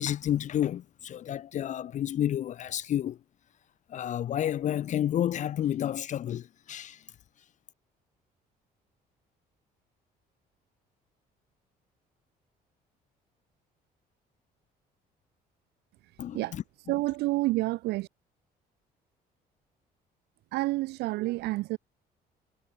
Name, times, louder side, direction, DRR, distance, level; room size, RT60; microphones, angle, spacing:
voice 1, 0.0-3.2 3.9-7.0 16.2-16.6, left 11 dB, 45° left, 0.5 m, -30 dB
voice 2, 16.9-18.1 20.5-21.8, right 20 dB, 75° right, 0.4 m, -29 dB
cardioid pair, 110°, 17 cm